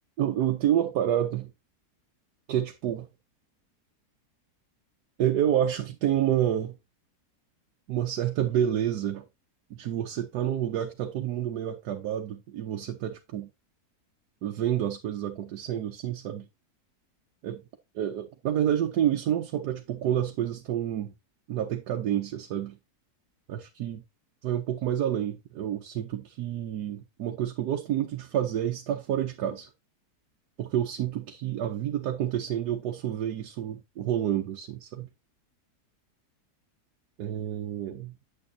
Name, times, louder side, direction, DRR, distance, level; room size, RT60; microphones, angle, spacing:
voice 1, 0.2-1.5 2.5-3.1 5.2-6.8 7.9-9.2 9.7-13.5 14.4-16.5 17.4-17.6 17.9-21.1 21.5-22.8 23.5-24.0 24.4-29.7 30.6-35.1 37.2-38.1, right 10 dB, 85° right, 1.3 m, -29 dB
8.8 x 7.3 x 2.7 m
omnidirectional pair, 1.7 m